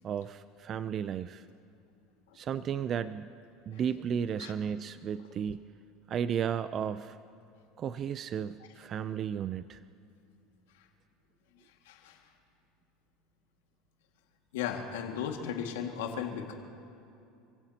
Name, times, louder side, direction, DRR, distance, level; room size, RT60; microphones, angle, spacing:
voice 1, 0.0-1.5 2.3-3.3 3.7-5.7 6.1-7.2 7.8-9.8, right 8 dB, 40° right, 14 dB, 0.4 m, -34 dB
voice 2, 11.9-12.2 14.5-16.5, left 8 dB, 85° left, 3 dB, 1.9 m, -35 dB
27.0 x 16.5 x 2.9 m, 2.6 s
supercardioid pair, 105°, 0 cm